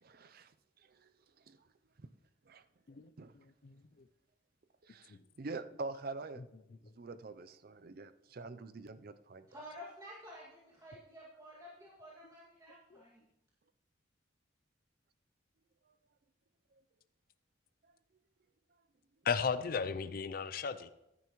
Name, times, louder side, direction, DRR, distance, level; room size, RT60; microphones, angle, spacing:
voice 1, 0.0-0.5 1.5-1.6 2.0-2.1 2.5-2.6 3.2-3.3 4.9-6.4 7.0-9.5, right 3 dB, 50° right, 12 dB, 0.5 m, -45 dB
voice 2, 9.5-13.2, equal, 20° right, -7 dB, 2.1 m, -51 dB
voice 3, 19.2-20.9, left 6 dB, 50° left, 12 dB, 0.4 m, -35 dB
15.0 x 10.5 x 3.1 m, 0.89 s
head